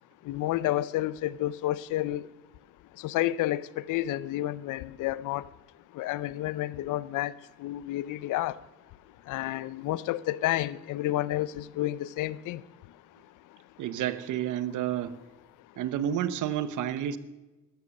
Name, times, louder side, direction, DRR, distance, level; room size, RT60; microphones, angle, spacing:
voice 1, 0.3-2.3 3.0-5.4 5.9-7.3 7.6-8.5 9.3-12.6, left 15 dB, 90° left, 0.6 m, -30 dB
voice 2, 13.8-15.2 15.8-17.2, right 10 dB, 80° right, 1.0 m, -30 dB
14.0 x 12.5 x 6.5 m
cardioid pair, 90°, 30 cm